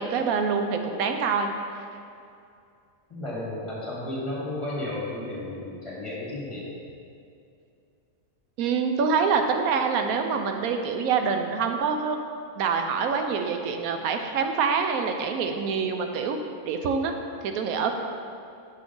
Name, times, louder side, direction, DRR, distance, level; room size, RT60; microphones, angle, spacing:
voice 1, 0.0-1.5 8.6-12.2 12.6-16.4 16.7-17.1 17.4-17.9, right 5 dB, 90° right, 5 dB, 1.1 m, -25 dB
voice 2, 3.1-6.7, left 1 dB, 20° left, -7 dB, 1.5 m, -33 dB
6.8 x 6.0 x 3.8 m, 2.5 s
omnidirectional pair, 1.5 m